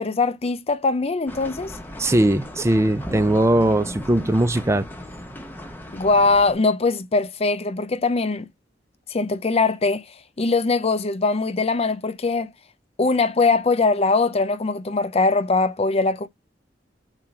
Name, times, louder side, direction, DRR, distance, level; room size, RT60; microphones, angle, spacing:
voice 1, 0.0-1.7 5.9-8.5 9.1-10.0 10.4-12.5 13.0-16.3, left 3 dB, 35° left, 0.6 m, -21 dB
sound 1, 1.3-6.5, equal, 10° left, 1.0 m, -37 dB
voice 2, 2.0-4.9, right 1 dB, 15° right, 0.5 m, -19 dB
4.5 x 3.8 x 5.4 m
head